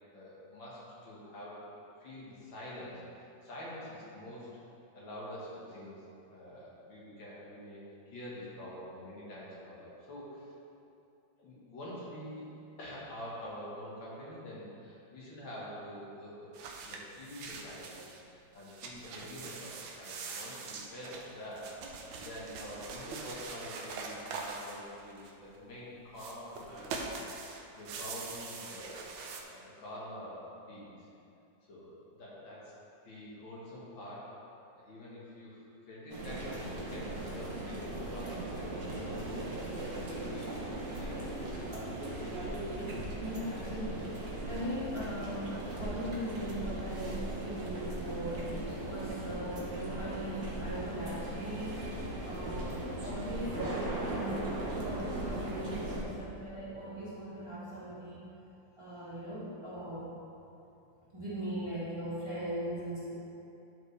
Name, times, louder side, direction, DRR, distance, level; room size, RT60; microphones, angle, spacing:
voice 1, 0.1-1.7 2.0-4.5 4.9-6.0 6.3-10.5 11.4-16.5 16.9-29.0 29.4-31.1 31.7-32.7 33.0-34.3 34.7-39.4 40.1-41.6, left 1 dB, 75° left, -7 dB, 2.4 m, -46 dB
sound 1, 16.5-18.2 18.6-25.6 26.1-29.4, right 4 dB, 80° right, 1.5 m, -43 dB
sound 2, 36.1-56.0, right 1 dB, 55° right, 1.6 m, -38 dB
voice 2, 42.9-52.0 52.2-58.3 58.8-60.1 61.1-63.1, equal, 15° right, -10 dB, 1.7 m, -40 dB
11.5 x 4.7 x 3.4 m, 2.7 s
omnidirectional pair, 2.1 m